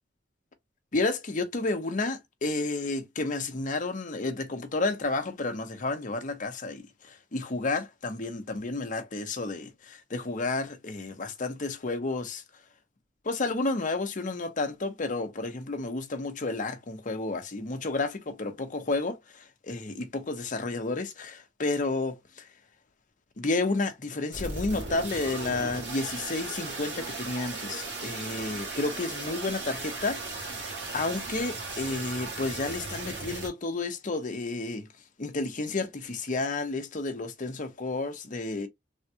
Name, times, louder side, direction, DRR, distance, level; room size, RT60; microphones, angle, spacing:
voice 1, 0.9-12.4 13.2-22.5 23.4-34.9 35.2-38.7, left 3 dB, 45° left, 0.8 m, -31 dB
sound 1, 24.3-33.5, right 3 dB, 75° right, 1.7 m, -37 dB
3.5 x 2.2 x 2.7 m
head